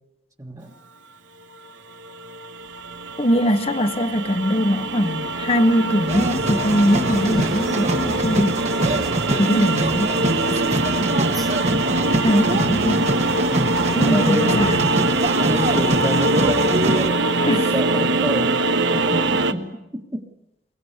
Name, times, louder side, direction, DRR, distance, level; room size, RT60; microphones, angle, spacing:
voice 1, 0.4-0.8 13.9-14.7 15.4-18.6 18.9-20.3, equal, 20° right, 1.7 m, -29 dB
sound 1, 2.1-19.5, right 2 dB, 80° right, 1.3 m, -23 dB
voice 2, 3.2-8.6 9.4-10.2 10.6-11.1 12.2-13.1 13.9-15.2 17.5-17.7, equal, 30° left, 1.1 m, -21 dB
sound 2, 6.1-17.1, right 1 dB, 35° right, 1.5 m, -25 dB
sound 3, 6.6-14.4, equal, ahead, 1.3 m, -38 dB
23.5 x 22.5 x 8.2 m
head